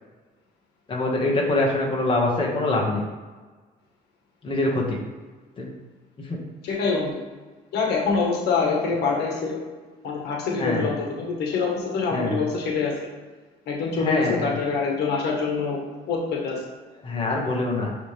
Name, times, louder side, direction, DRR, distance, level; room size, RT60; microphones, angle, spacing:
voice 1, 0.9-3.0 4.4-5.0 5.6-5.7 6.2-6.4 10.6-10.9 12.1-12.4 14.0-14.5 17.0-17.9, left 2 dB, 30° left, -2 dB, 1.8 m, -24 dB
voice 2, 6.6-7.2 7.7-9.6 10.0-13.0 13.7-15.8 16.1-16.6, left 4 dB, 75° left, -1 dB, 1.6 m, -25 dB
10.0 x 3.6 x 3.5 m, 1.4 s
cardioid pair, 110°, 17 cm